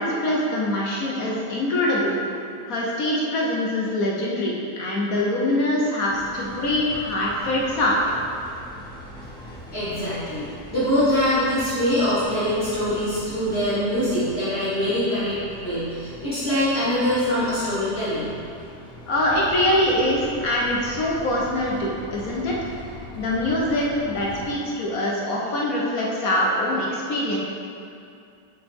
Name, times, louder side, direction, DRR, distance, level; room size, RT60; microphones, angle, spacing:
voice 1, 0.0-2.2 2.7-8.0 19.1-22.6 23.1-27.4, left 1 dB, 60° left, -4 dB, 1.4 m, -23 dB
sound 1, 6.1-24.5, equal, 5° left, 0.8 m, -41 dB
voice 2, 9.4-18.3, left 1 dB, 40° left, -11 dB, 1.9 m, -24 dB
8.1 x 5.5 x 3.6 m, 2.4 s
omnidirectional pair, 1.8 m